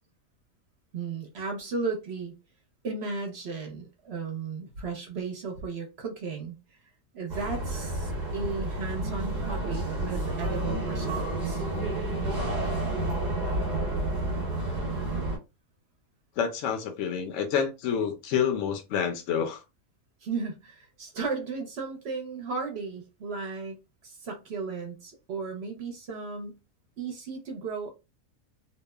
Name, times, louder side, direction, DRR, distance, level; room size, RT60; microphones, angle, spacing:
voice 1, 0.9-2.3 2.8-6.8 7.1-11.6 20.2-23.8 24.0-26.6 27.0-27.9, right 4 dB, 55° right, 0.8 m, -35 dB
sound 1, 7.3-15.4, right 2 dB, 35° right, 1.1 m, -30 dB
voice 2, 16.4-19.6, left 7 dB, 70° left, 0.8 m, -28 dB
2.9 x 2.0 x 2.2 m
omnidirectional pair, 1.5 m